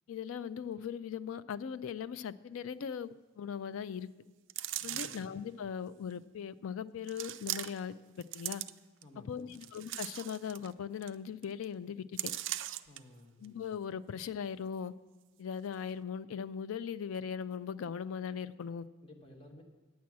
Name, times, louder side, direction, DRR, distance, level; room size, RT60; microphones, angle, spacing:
voice 1, 0.1-4.1 4.8-8.6 9.3-12.3 13.4-14.9 15.4-18.9, left 7 dB, 70° left, 15 dB, 0.3 m, -39 dB
sound 1, 4.5-5.3 6.1-6.2 7.1-7.9 8.2-9.0 9.5-10.7 11.0-11.1 11.4-11.6 12.2-13.0 13.4-13.5, right 14 dB, 55° right, 0.3 m, -39 dB
voice 2, 4.9-5.3 9.0-9.6 12.8-13.4 19.0-19.6, left 1 dB, 25° left, 1 dB, 1.1 m, -55 dB
9.4 x 8.4 x 6.1 m, 1.2 s
head